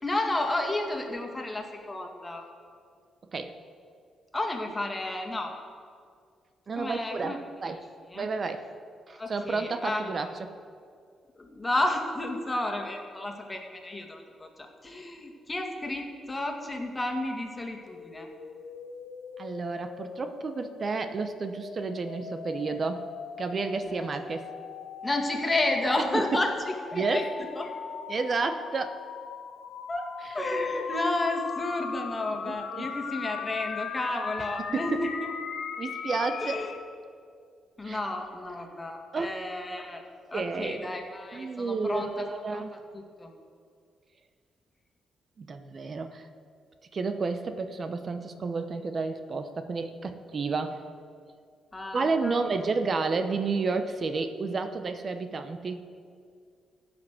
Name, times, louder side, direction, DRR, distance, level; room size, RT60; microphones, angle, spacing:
voice 1, 0.0-2.5 4.3-5.5 6.8-7.4 8.1-8.3 9.2-10.3 11.4-18.3 23.8-24.1 25.0-27.3 27.6-27.7 29.9-35.3 36.4-36.7 37.8-40.0 40.3-42.6 42.9-43.3 51.7-52.4, left 2 dB, 25° left, 3 dB, 2.0 m, -32 dB
voice 2, 6.7-7.9 8.1-8.7 9.1-10.3 19.4-23.1 23.4-24.5 26.1-26.4 26.9-27.3 28.1-29.0 30.2-30.3 32.3-32.9 34.7-35.1 35.8-36.6 37.8-38.0 39.1-39.3 40.3-40.9 41.3-42.7 45.4-46.3 46.9-50.8 51.9-55.8, right 4 dB, 50° right, 8 dB, 0.8 m, -31 dB
sound 1, 17.9-36.8, left 6 dB, 70° left, 0.9 m, -39 dB
16.0 x 5.3 x 6.5 m, 2.2 s
hypercardioid pair, 45°, 0 cm